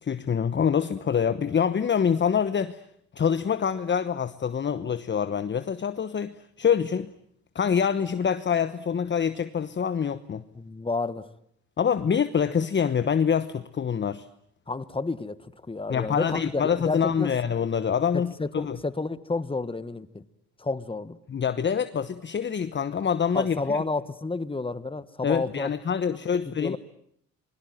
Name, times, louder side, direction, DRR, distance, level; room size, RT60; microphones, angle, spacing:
voice 1, 0.0-2.8 3.2-7.1 7.5-10.4 11.8-14.3 15.9-18.8 21.3-23.8 25.2-26.8, left 7 dB, 35° left, 1.1 m, -25 dB
voice 2, 10.5-11.3 14.7-17.3 18.1-20.2 20.6-21.2 23.3-25.7 26.1-26.2 26.4-26.8, left 3 dB, 20° left, 1.5 m, -30 dB
27.5 x 22.0 x 9.2 m
cardioid pair, 90°, 30 cm